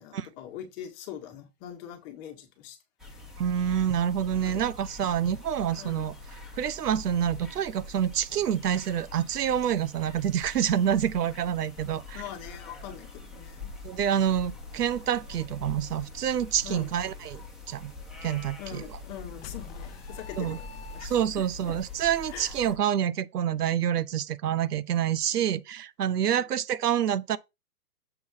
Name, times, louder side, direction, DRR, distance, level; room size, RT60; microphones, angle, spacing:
voice 1, 0.0-2.8 4.4-4.6 5.7-6.1 12.1-13.7 16.6-16.9 18.6-21.7 22.3-22.5 26.2-26.5, left 10 dB, 20° left, 1.4 m, -43 dB
sound 1, 3.0-22.7, left 3 dB, ahead, 1.4 m, -44 dB
voice 2, 3.4-6.1 6.6-12.2 13.8-17.4 17.7-17.9 18.2-18.8 20.4-20.6 21.0-27.4, right 9 dB, 90° right, 0.9 m, -27 dB
sound 2, 19.4-21.5, left 7 dB, 40° left, 0.6 m, -46 dB
7.1 x 4.3 x 5.6 m
hypercardioid pair, 160°, 46 cm